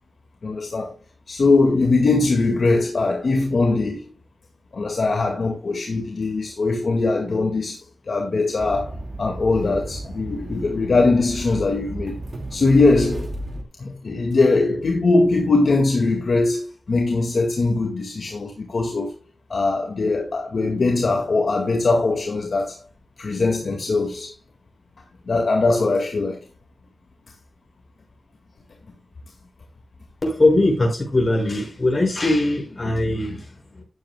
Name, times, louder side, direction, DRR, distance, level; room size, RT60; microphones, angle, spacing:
voice 1, 0.4-0.9 1.3-4.0 4.7-12.2 12.5-13.3 13.8-19.1 19.5-22.8 23.2-24.3 25.3-26.4, left 3 dB, 60° left, 2.0 m, -21 dB
sound 1, 8.6-13.6, right 1 dB, 45° right, 2.2 m, -33 dB
voice 2, 30.2-33.8, left 2 dB, 30° left, 6.0 m, -21 dB
14.0 x 10.0 x 2.3 m
wide cardioid pair, 140°, 0 cm